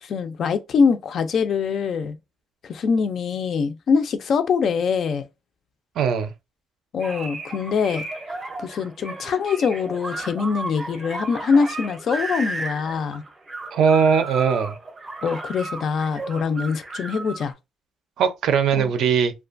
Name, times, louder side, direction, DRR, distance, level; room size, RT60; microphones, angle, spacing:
voice 1, 0.0-2.2 2.6-5.3 6.9-8.0 8.6-13.2 15.2-17.5 18.8-18.9, left 5 dB, 50° left, 0.3 m, -23 dB
voice 2, 6.0-6.3 13.7-14.8 18.2-19.3, right 7 dB, 70° right, 0.4 m, -20 dB
sound 1, 7.0-17.5, right 2 dB, 20° right, 0.6 m, -34 dB
2.5 x 2.2 x 2.5 m
cardioid pair, 160°, 0 cm